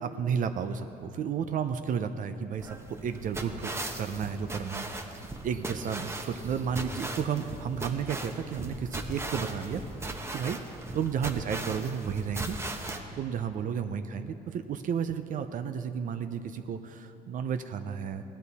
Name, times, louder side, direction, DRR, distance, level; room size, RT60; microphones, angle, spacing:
voice 1, 0.0-2.8 3.0-3.7 4.0-4.9 5.4-9.8 10.3-10.6 10.9-12.6 13.2-18.2, right 7 dB, 50° right, 9 dB, 0.6 m, -32 dB
sound 1, 2.6-13.0, right 2 dB, 15° right, 0.9 m, -38 dB
17.0 x 10.5 x 4.1 m, 2.8 s
cardioid pair, 110°, 17 cm